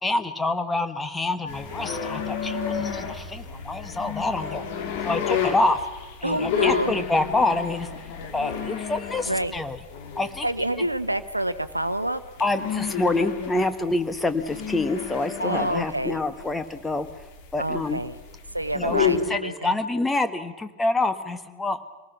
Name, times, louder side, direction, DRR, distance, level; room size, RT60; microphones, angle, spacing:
voice 1, 0.0-4.6 5.0-5.9 6.2-7.9 8.3-9.8 10.2-10.5 10.8-10.9 12.4-17.1 17.5-18.0 18.7-21.8, left 2 dB, 10° left, 9 dB, 1.5 m, -26 dB
sound 1, 1.5-19.2, left 7 dB, 50° left, 3.1 m, -31 dB
voice 2, 6.2-6.9 9.2-9.5 10.4-12.2 15.4-16.2 17.6-18.1 18.5-19.7, right 1 dB, 85° right, 13 dB, 0.9 m, -27 dB
27.0 x 19.0 x 5.9 m, 1.2 s
figure-of-eight pair, 90°, 0 cm